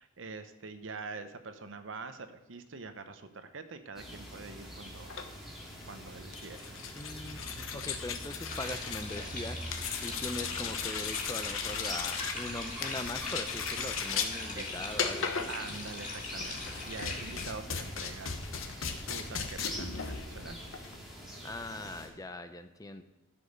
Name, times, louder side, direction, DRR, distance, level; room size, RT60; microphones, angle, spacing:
voice 1, 0.0-5.2 5.9-6.7 14.6-14.8 15.5-20.6, right 4 dB, 70° right, 10 dB, 0.8 m, -45 dB
sound 1, 3.9-22.1, equal, ahead, 2.4 m, -45 dB
sound 2, 5.0-21.0, left 6 dB, 85° left, 1.0 m, -38 dB
voice 2, 7.0-15.5 21.4-23.0, left 2 dB, 20° left, 9 dB, 0.5 m, -41 dB
sound 3, 8.5-17.5, left 3 dB, 40° left, 2.8 m, -42 dB
12.0 x 5.3 x 6.5 m, 1.0 s
head